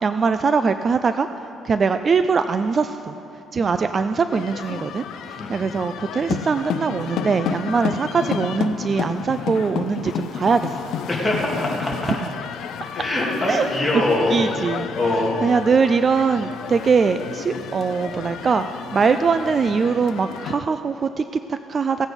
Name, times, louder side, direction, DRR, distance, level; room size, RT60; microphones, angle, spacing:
voice 1, 0.0-3.2 3.5-10.8 13.5-13.7 13.9-14.0 14.3-14.9 15.4-22.1, right 5 dB, 35° right, 10 dB, 0.3 m, -22 dB
sound 1, 4.3-20.6, left 9 dB, 75° left, 0.5 m, -31 dB
voice 2, 5.4-5.7 11.1-12.1 12.9-14.4 15.0-15.3, left 2 dB, 10° left, -5 dB, 2.6 m, -23 dB
16.5 x 8.2 x 5.2 m, 3.0 s
cardioid pair, 125°, 0 cm